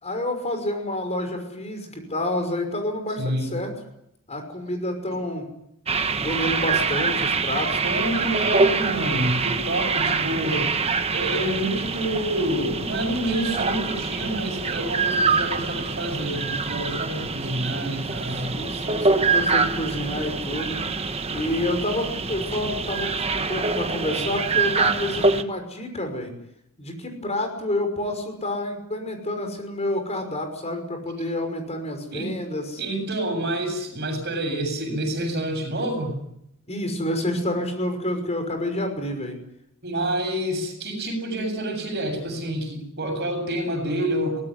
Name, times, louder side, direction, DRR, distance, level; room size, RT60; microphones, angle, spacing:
voice 1, 0.0-3.7 4.3-5.5 6.2-7.7 18.3-20.8 21.3-26.3 26.8-32.8 36.7-39.4, left 1 dB, 30° left, 5 dB, 5.8 m, -29 dB
voice 2, 3.2-3.6 7.8-10.7 11.1-18.6 32.1-32.4 32.8-36.2 39.8-44.4, right 1 dB, 50° right, 5 dB, 7.5 m, -28 dB
sound 1, 5.9-25.4, right 4 dB, 30° right, 1.4 m, -25 dB
24.5 x 18.5 x 9.9 m, 0.78 s
head